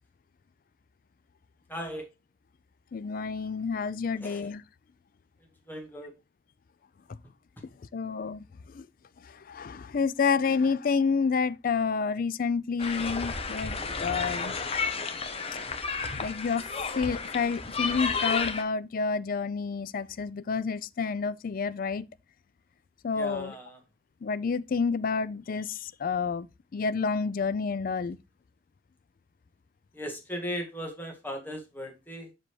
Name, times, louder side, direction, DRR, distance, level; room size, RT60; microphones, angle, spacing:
voice 1, 1.7-2.1 4.1-4.5 5.7-6.1 23.1-23.8 29.9-32.3, equal, 10° left, 1.9 m, -37 dB
voice 2, 2.9-4.6 7.9-8.4 8.7-8.9 9.5-14.5 16.2-16.7 17.0-22.0 23.0-23.5 24.2-26.5 26.7-28.2, left 5 dB, 50° left, 0.4 m, -29 dB
sound 1, 12.8-18.6, left 4 dB, 30° left, 1.0 m, -32 dB
7.5 x 5.9 x 3.2 m
head